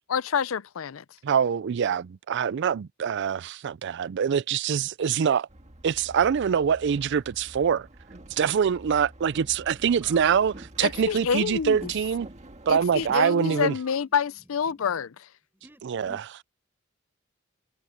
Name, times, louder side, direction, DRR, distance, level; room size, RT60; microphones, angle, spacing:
voice 1, 0.1-1.0 10.8-11.9 12.7-15.1, left 7 dB, 80° left, 0.5 m, -27 dB
voice 2, 1.2-5.5 5.8-7.9 8.3-12.3 12.7-13.8 15.8-16.2, right 7 dB, 60° right, 0.4 m, -24 dB
Boat Water vehicle, 5.5-13.2, right 1 dB, 35° right, 1.7 m, -46 dB
voice 3, 10.0-10.5 13.0-14.2 14.7-15.0 15.5-16.4, right 1 dB, 10° right, 7.8 m, -48 dB
head